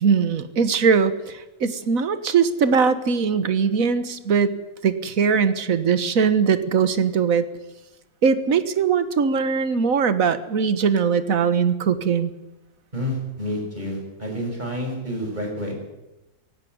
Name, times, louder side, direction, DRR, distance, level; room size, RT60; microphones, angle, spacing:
voice 1, 0.0-4.5 4.8-7.4 8.2-12.3, right 6 dB, 50° right, 12 dB, 1.6 m, -21 dB
voice 2, 12.9-15.7, equal, 25° right, 1 dB, 6.4 m, -29 dB
17.5 x 16.5 x 9.5 m, 0.98 s
omnidirectional pair, 1.9 m